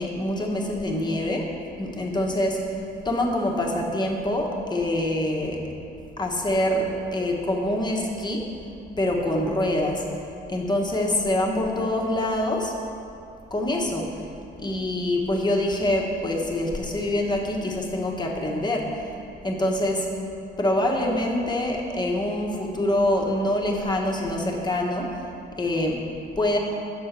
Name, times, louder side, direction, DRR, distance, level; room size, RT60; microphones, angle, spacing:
voice 1, 0.0-1.5 1.8-2.6 3.0-5.6 6.2-8.5 9.0-10.0 10.5-12.7 13.5-14.1 14.6-18.8 19.4-20.0 20.6-25.1 25.6-26.0 26.4-26.6, left 1 dB, 20° left, 0 dB, 1.1 m, -25 dB
7.1 x 4.4 x 6.6 m, 2.6 s
cardioid pair, 90°, 20 cm